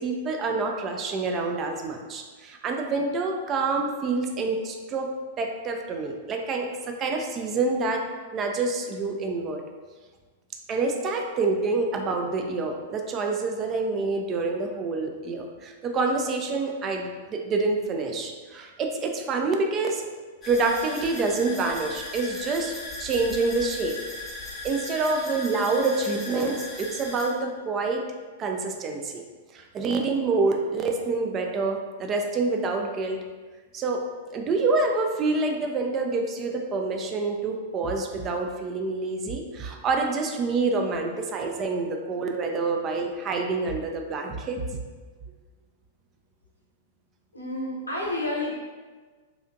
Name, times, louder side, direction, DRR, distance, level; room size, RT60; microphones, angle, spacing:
voice 1, 0.0-5.1 5.4-8.0 8.3-9.6 10.7-20.0 20.4-24.0 24.6-28.0 28.4-29.2 29.5-33.2 33.7-44.6, right 3 dB, 25° right, 3 dB, 0.3 m, -27 dB
sound 1, 20.4-27.3, left 2 dB, 20° left, 0.9 m, -38 dB
voice 2, 47.3-48.5, left 1 dB, 80° left, -3 dB, 0.6 m, -30 dB
2.8 x 2.4 x 2.5 m, 1.4 s
figure-of-eight pair, 100°, 0 cm